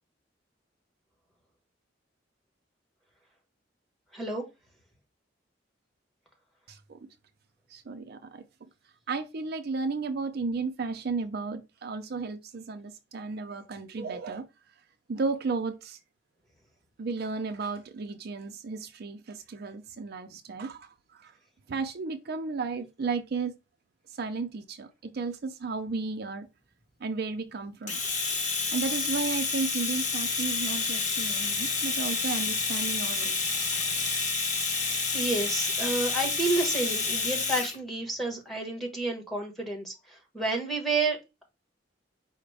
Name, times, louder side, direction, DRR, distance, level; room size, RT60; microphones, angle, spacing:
voice 1, 4.1-4.5 34.8-41.4, right 2 dB, ahead, 1.3 m, -30 dB
voice 2, 6.7-7.1 7.7-8.4 9.1-14.5 15.1-16.0 17.0-21.3 21.7-23.5 24.1-26.5 27.0-28.0 28.7-33.9, right 4 dB, 55° right, 0.5 m, -34 dB
Domestic sounds home sounds, 27.9-37.8, left 4 dB, 40° left, 1.2 m, -29 dB
4.9 x 2.1 x 4.7 m
head